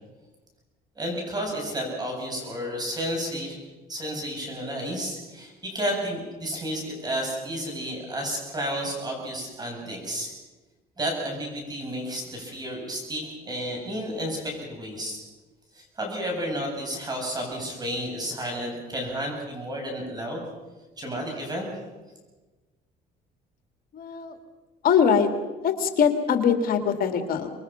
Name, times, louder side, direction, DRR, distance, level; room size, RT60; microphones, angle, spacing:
voice 1, 1.0-3.6 3.9-10.3 11.0-15.2 15.7-20.5 21.0-21.7, equal, 25° right, 1 dB, 7.7 m, -31 dB
voice 2, 23.9-24.3 24.8-25.3 25.6-27.5, left 7 dB, 60° left, 6 dB, 2.3 m, -22 dB
26.0 x 21.5 x 5.8 m, 1.2 s
cardioid pair, 110°, 17 cm